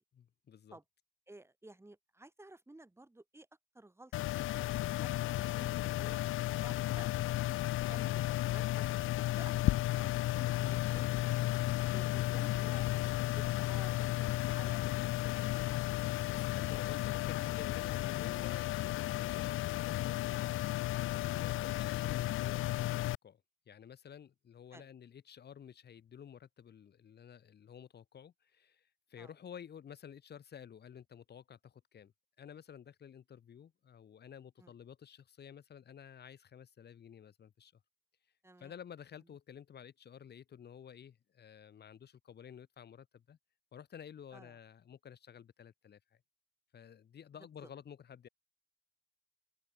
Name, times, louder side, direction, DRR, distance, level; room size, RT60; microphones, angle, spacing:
voice 1, 0.1-0.8 16.3-23.4 23.7-32.1 32.4-37.7 38.6-43.4 43.7-46.0 46.7-48.3, left 8 dB, 55° left, 5.2 m, -52 dB
voice 2, 1.3-3.5 3.7-6.2 6.6-7.2 7.6-8.9 9.3-11.3 11.9-15.3 21.5-21.6 24.7-24.9 29.2-29.3 34.6-34.7 38.4-38.7 44.3-44.5, right 2 dB, 15° right, 6.1 m, -55 dB
sound 1, 4.1-23.2, left 16 dB, 85° left, 1.3 m, -33 dB
cardioid pair, 90°, 20 cm